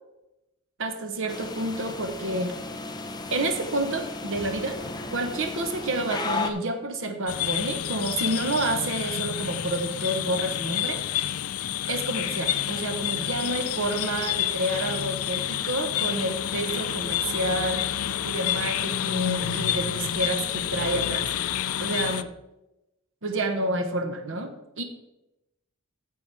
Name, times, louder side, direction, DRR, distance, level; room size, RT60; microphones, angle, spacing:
voice 1, 0.8-2.5 3.3-4.8 5.1-11.0 11.9-17.9 18.2-21.2 21.8-22.3 23.2-24.5 24.8-24.9, right 1 dB, 65° right, 5 dB, 1.1 m, -29 dB
sound 1, 1.3-6.5, left 3 dB, 20° left, 0.8 m, -34 dB
sound 2, 7.3-22.2, left 11 dB, 80° left, 0.5 m, -29 dB
9.5 x 7.2 x 4.7 m, 0.92 s
head